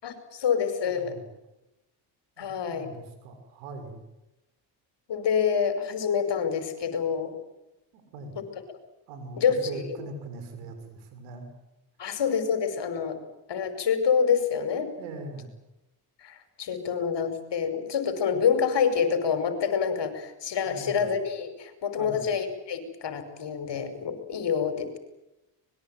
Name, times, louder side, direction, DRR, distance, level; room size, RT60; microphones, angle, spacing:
voice 1, 0.0-1.1 2.4-2.9 5.1-7.3 9.4-9.6 12.0-13.2 13.5-14.9 16.2-25.0, left 7 dB, 60° left, 8 dB, 5.8 m, -27 dB
voice 2, 0.8-1.3 2.4-4.0 7.9-8.3 9.1-11.5 15.0-15.5 20.6-21.0 22.0-22.2, right 3 dB, 90° right, 7 dB, 6.7 m, -41 dB
25.0 x 22.5 x 9.3 m, 0.95 s
supercardioid pair, 65°, 48 cm